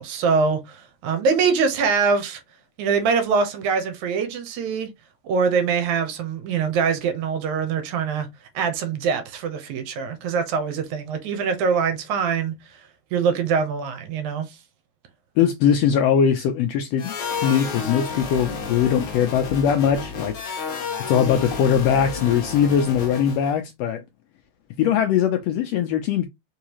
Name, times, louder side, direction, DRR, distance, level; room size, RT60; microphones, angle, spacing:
voice 1, 0.0-2.4 2.8-4.9 5.2-8.3 8.6-12.6 13.1-14.6, right 5 dB, 75° right, 2.3 m, -23 dB
voice 2, 15.4-20.4 20.7-24.0 24.8-26.3, left 8 dB, 80° left, 1.5 m, -21 dB
sound 1, 17.0-23.5, left 5 dB, 55° left, 1.6 m, -31 dB
4.8 x 3.6 x 2.9 m
omnidirectional pair, 3.4 m